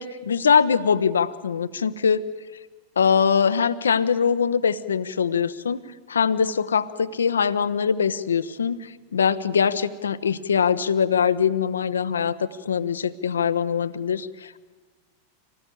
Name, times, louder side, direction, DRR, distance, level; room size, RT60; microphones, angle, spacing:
voice 1, 0.0-2.2 3.0-5.8 6.1-14.6, left 6 dB, 70° left, 14 dB, 0.9 m, -22 dB
26.0 x 18.5 x 8.3 m, 1.4 s
figure-of-eight pair, 90°, 0 cm